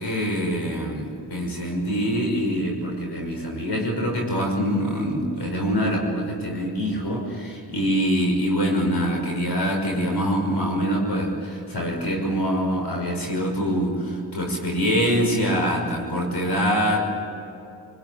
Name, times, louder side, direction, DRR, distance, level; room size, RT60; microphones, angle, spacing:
voice 1, 0.0-17.0, equal, 70° left, 0 dB, 5.9 m, -24 dB
27.0 x 20.5 x 9.0 m, 2.7 s
cardioid pair, 60°, 41 cm